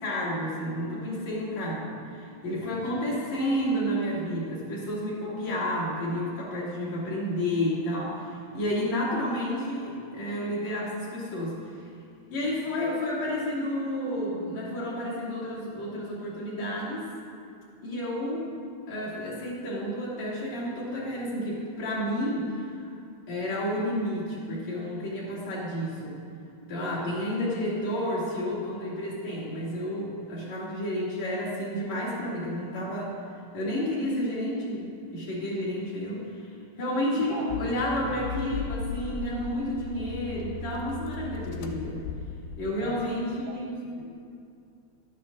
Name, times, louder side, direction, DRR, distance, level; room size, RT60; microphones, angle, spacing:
voice 1, 0.0-11.5 12.3-17.1 17.8-18.5 18.9-22.8 23.3-26.2 26.7-33.1 33.5-36.3 36.8-42.0 42.6-43.8, left 1 dB, 50° left, -7 dB, 3.5 m, -31 dB
voice 2, 2.5-2.9 3.7-3.9 37.2-37.6 42.8-43.0 43.5-43.6 44.0-44.1, right 5 dB, 80° right, -3 dB, 2.7 m, -40 dB
Accelerating revving vroom, 37.5-42.9, left 4 dB, 80° left, 2.2 m, -37 dB
12.5 x 12.0 x 2.6 m, 2.4 s
omnidirectional pair, 4.5 m